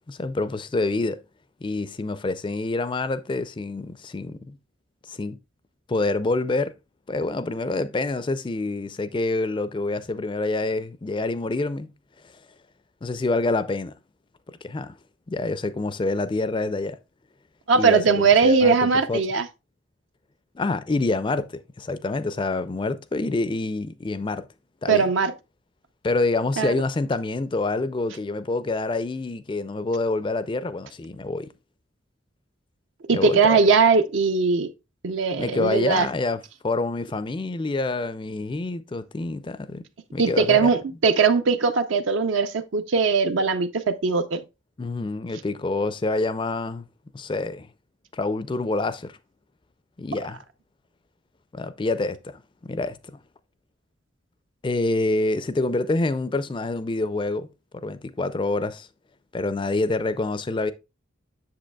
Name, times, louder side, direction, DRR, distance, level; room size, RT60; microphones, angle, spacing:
voice 1, 0.1-1.2 1.6-4.6 5.1-5.4 5.9-6.7 7.1-11.9 13.0-13.9 14.5-14.9 15.3-17.0 17.7-19.2 20.6-24.5 24.8-25.0 26.0-31.5 33.1-33.6 35.4-39.8 40.1-40.7 44.8-46.8 47.1-47.7 48.1-49.2 50.0-50.4 51.5-53.2 54.6-57.5 57.7-58.9 59.3-60.7, left 2 dB, 25° left, 0.4 m, -27 dB
voice 2, 17.7-19.5 24.9-25.3 26.6-26.7 33.1-34.7 35.0-36.1 40.2-44.4, right 5 dB, 65° right, 0.5 m, -20 dB
7.6 x 6.7 x 2.2 m
head